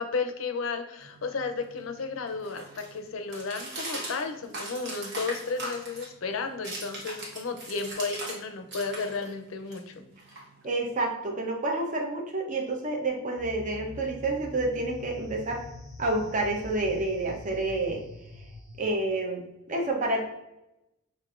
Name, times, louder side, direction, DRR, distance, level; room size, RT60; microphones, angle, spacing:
voice 1, 0.0-10.0, left 4 dB, 75° left, 7 dB, 0.5 m, -33 dB
sound 1, 1.0-8.4 8.7-10.9, right 1 dB, 55° right, 1.1 m, -40 dB
voice 2, 10.6-15.6 16.0-18.0 18.8-20.2, right 2 dB, 40° right, 1 dB, 0.7 m, -29 dB
sound 2, 13.4-18.8, left 2 dB, 15° left, 0.7 m, -44 dB
5.9 x 2.5 x 2.4 m, 0.89 s
head